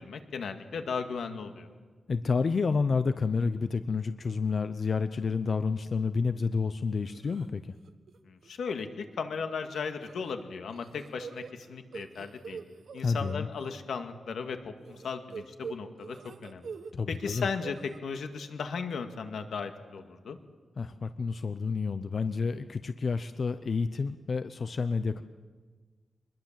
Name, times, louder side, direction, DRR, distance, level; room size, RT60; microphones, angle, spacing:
voice 1, 0.0-1.7 8.3-11.4 11.7-12.6 12.9-16.2 16.4-16.6 17.1-20.4, left 5 dB, 90° left, 6 dB, 2.0 m, -36 dB
voice 2, 2.1-7.7 13.0-13.5 16.9-17.5 20.8-25.2, left 4 dB, 45° left, 11 dB, 0.7 m, -29 dB
sound 1, 7.1-7.5 7.9-8.2 8.4-8.5 9.7-10.3 10.7-13.7 14.9-16.9 17.2-18.0, right 6 dB, 65° right, 1.4 m, -44 dB
25.0 x 21.0 x 7.5 m, 1.4 s
wide cardioid pair, 145°, 0 cm